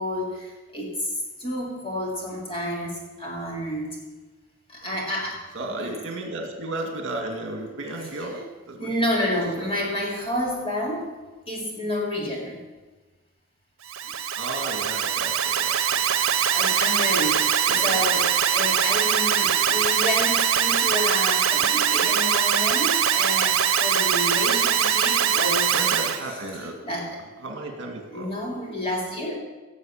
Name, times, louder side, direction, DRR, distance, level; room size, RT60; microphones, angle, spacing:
voice 1, 0.0-3.9 4.7-5.4 5.7-5.9 8.8-11.1 11.5-12.6 16.5-25.8 26.8-27.2 28.1-29.3, left 1 dB, 25° left, -2 dB, 3.2 m, -29 dB
voice 2, 5.5-9.3 9.6-9.8 14.4-16.6 17.7-18.3 25.7-26.8 27.4-28.3, right 2 dB, 60° right, 3 dB, 2.3 m, -34 dB
Alarm, 13.8-26.2, right 8 dB, 75° right, 0.9 m, -22 dB
17.0 x 7.3 x 7.3 m, 1.3 s
head